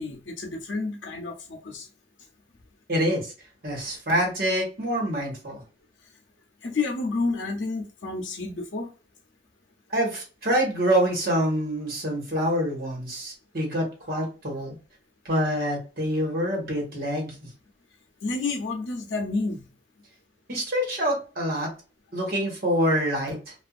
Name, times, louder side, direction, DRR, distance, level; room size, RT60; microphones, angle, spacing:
voice 1, 0.0-1.9 6.6-8.9 18.2-19.7, left 3 dB, 85° left, 0.6 m, -30 dB
voice 2, 2.9-3.3 3.6-5.6 9.9-14.7 15.2-17.3 20.5-21.7 22.1-23.5, equal, 50° right, 1.3 m, -26 dB
2.5 x 2.4 x 2.3 m
head